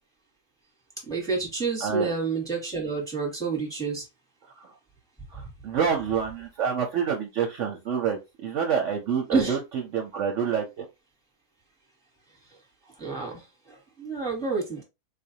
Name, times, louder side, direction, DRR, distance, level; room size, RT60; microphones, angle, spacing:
voice 1, 1.0-4.0 5.3-5.5 9.3-9.6 13.0-14.8, right 4 dB, 5° left, 0 dB, 0.9 m, -29 dB
voice 2, 1.8-2.1 4.4-4.8 5.3-10.8, right 7 dB, 60° right, 2 dB, 0.8 m, -28 dB
4.0 x 2.5 x 2.7 m, 0.24 s
omnidirectional pair, 1.6 m